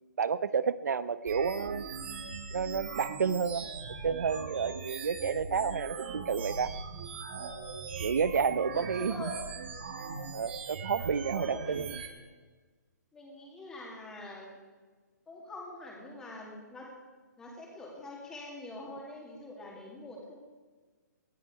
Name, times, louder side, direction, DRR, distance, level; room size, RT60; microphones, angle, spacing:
voice 1, 0.2-1.8 2.5-3.7 4.0-6.7 8.0-9.3 10.3-12.0, right 6 dB, 65° right, 16 dB, 0.8 m, -30 dB
sound 1, 1.3-12.1, right 5 dB, 35° right, 1.6 m, -40 dB
voice 2, 8.7-9.5 11.2-12.1 13.1-14.6 15.3-16.9 17.4-20.3, left 2 dB, 5° left, -2 dB, 2.1 m, -44 dB
18.5 x 12.5 x 4.8 m, 1.4 s
hypercardioid pair, 175°, 10 cm